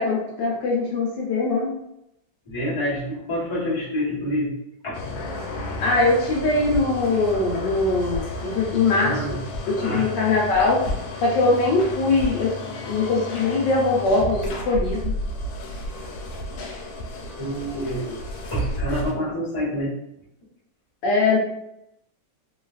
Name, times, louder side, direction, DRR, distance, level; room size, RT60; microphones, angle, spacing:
voice 1, 0.0-1.7 5.8-9.4 9.6-10.8 11.2-12.5 12.9-15.1 21.0-21.4, left 3 dB, 70° left, -3 dB, 1.2 m, -21 dB
voice 2, 2.4-4.5 4.8-5.0 8.9-9.4 9.8-10.1 10.6-10.7 17.4-18.1 18.4-19.9, equal, 25° left, -8 dB, 0.7 m, -27 dB
sound 1, 4.9-19.1, left 1 dB, 90° left, 1.4 m, -33 dB
sound 2, 6.7-7.1 8.1-8.4 9.5-9.7 10.8-11.3 12.2-12.6, left 2 dB, 85° right, 0.5 m, -33 dB
3.2 x 2.3 x 2.3 m, 0.81 s
omnidirectional pair, 2.1 m